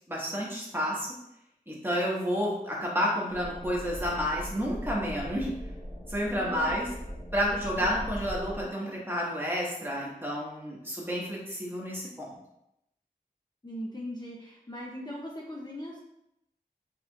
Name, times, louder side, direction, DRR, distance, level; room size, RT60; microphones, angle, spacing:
voice 1, 0.1-1.1 1.7-5.5 6.1-6.9 7.3-12.3, equal, 15° right, -4 dB, 1.4 m, -30 dB
sound 1, 3.3-8.6, equal, 45° left, 1.2 m, -40 dB
voice 2, 6.4-6.8 7.8-7.9 13.6-16.0, left 1 dB, 25° left, -2 dB, 0.6 m, -39 dB
4.7 x 3.7 x 2.4 m, 0.82 s
wide cardioid pair, 45°, 16 cm